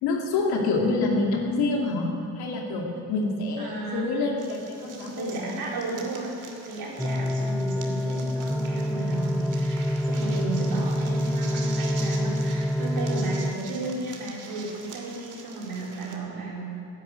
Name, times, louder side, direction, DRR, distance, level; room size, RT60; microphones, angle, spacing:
voice 1, 0.0-2.1 2.4-5.6, left 3 dB, 85° left, 0 dB, 2.6 m, -27 dB
voice 2, 3.6-4.1 5.1-16.8, right 3 dB, 70° right, -3 dB, 4.5 m, -34 dB
sound 1, 4.4-16.2, right 4 dB, 55° right, 2.6 m, -45 dB
sound 2, 7.0-13.5, equal, ahead, 0.3 m, -26 dB
13.5 x 10.5 x 10.0 m, 2.6 s
supercardioid pair, 65°, 37 cm